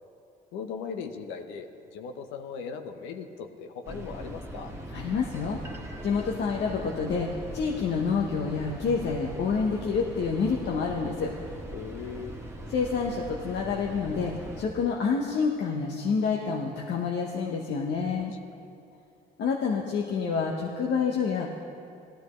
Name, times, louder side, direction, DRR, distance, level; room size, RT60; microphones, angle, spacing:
voice 1, 0.5-4.7 11.7-12.3, left 6 dB, 90° left, 5 dB, 0.9 m, -38 dB
sound 1, 3.8-14.6, right 1 dB, 15° right, 1.7 m, -40 dB
voice 2, 4.9-5.6 6.0-11.3 12.7-18.3 19.4-21.7, left 5 dB, 65° left, -1 dB, 1.1 m, -28 dB
17.0 x 12.5 x 3.2 m, 2.5 s
supercardioid pair, 70°, 19 cm